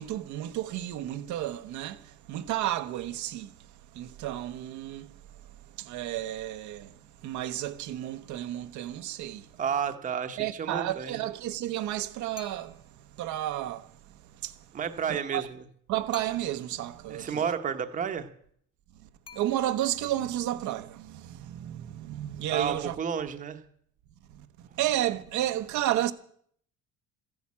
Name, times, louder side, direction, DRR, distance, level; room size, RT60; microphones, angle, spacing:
voice 1, 0.0-3.5 3.9-5.1 5.8-9.5 10.4-12.8 13.2-13.9 14.4-14.6 15.1-15.4 15.9-17.4 19.3-22.9 24.3-24.4 24.7-26.1, right 13 dB, 65° right, 1.0 m, -32 dB
voice 2, 9.6-11.2 14.7-15.6 17.1-18.3 22.5-23.6, right 7 dB, 25° right, 1.0 m, -31 dB
sound 1, 12.3-13.0 16.1-16.8 19.2-20.0, left 4 dB, 15° left, 0.9 m, -49 dB
14.5 x 10.5 x 8.5 m
cardioid pair, 180°, 32 cm